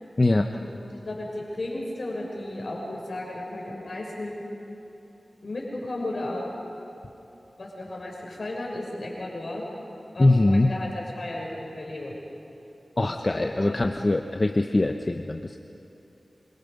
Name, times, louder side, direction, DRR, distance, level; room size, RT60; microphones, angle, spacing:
voice 1, 0.2-0.5 10.2-10.7 13.0-15.6, left 2 dB, 40° left, 5 dB, 1.0 m, -22 dB
voice 2, 1.0-4.4 5.4-6.5 7.6-9.6 10.1-12.2 13.0-13.1 13.6-13.8, left 1 dB, 60° left, -1 dB, 6.1 m, -34 dB
27.0 x 25.5 x 5.4 m, 3.0 s
cardioid pair, 50°, 0 cm